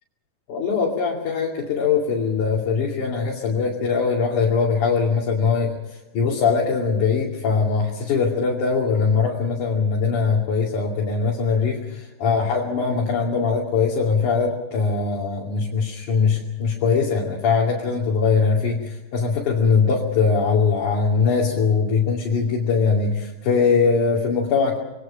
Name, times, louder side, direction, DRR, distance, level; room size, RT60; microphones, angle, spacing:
voice 1, 0.5-5.7 6.1-24.8, left 5 dB, 50° left, -3 dB, 3.7 m, -21 dB
27.0 x 21.0 x 5.8 m, 1.0 s
omnidirectional pair, 5.1 m